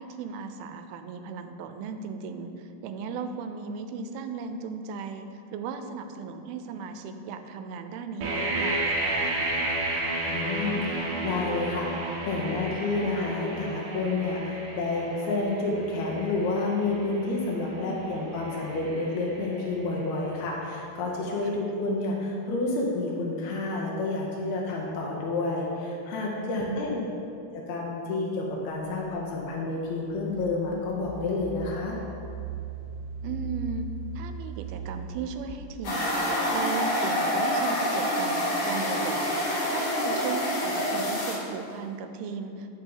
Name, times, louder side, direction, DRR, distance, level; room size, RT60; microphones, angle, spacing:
voice 1, 0.0-9.6 17.9-18.3 26.4-27.0 33.2-33.9 34.2-42.8, right 5 dB, 85° right, 7 dB, 2.4 m, -37 dB
sound 1, 8.2-20.0, right 2 dB, 70° right, 2.1 m, -33 dB
voice 2, 10.3-27.0 27.5-32.0, left 3 dB, 80° left, -2 dB, 1.6 m, -29 dB
Engine, 29.2-29.3 29.9-35.8, right 3 dB, 50° right, 2.2 m, -38 dB
sound 2, 35.8-41.4, equal, 55° left, 1.7 m, -27 dB
8.8 x 5.6 x 3.9 m, 2.6 s
omnidirectional pair, 4.3 m